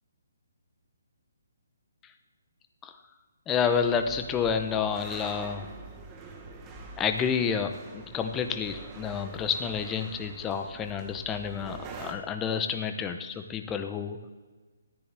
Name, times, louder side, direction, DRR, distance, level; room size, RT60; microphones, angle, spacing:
voice 1, 3.5-5.7 7.0-14.2, left 7 dB, 10° left, 7 dB, 0.7 m, -29 dB
sound 1, 3.7-12.1, right 3 dB, 15° right, 1.0 m, -45 dB
13.5 x 9.8 x 3.4 m, 1.3 s
hypercardioid pair, 165°, 0 cm